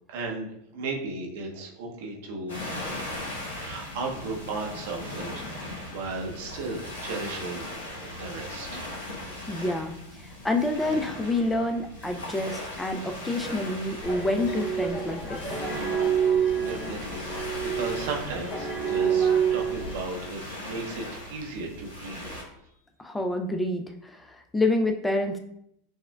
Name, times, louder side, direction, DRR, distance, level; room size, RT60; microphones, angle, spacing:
voice 1, 0.1-0.5 0.7-2.6 3.5-7.7 8.0-8.9 16.5-22.4, right 3 dB, 65° right, 0 dB, 0.7 m, -35 dB
sound 1, 2.5-22.4, left 1 dB, 85° left, 1.0 m, -39 dB
voice 2, 9.5-15.4 23.0-25.4, left 2 dB, 10° left, 5 dB, 0.4 m, -28 dB
sound 2, 14.0-20.0, right 7 dB, 45° left, 0.8 m, -27 dB
6.3 x 2.1 x 2.2 m, 0.74 s
hypercardioid pair, 90°, 0 cm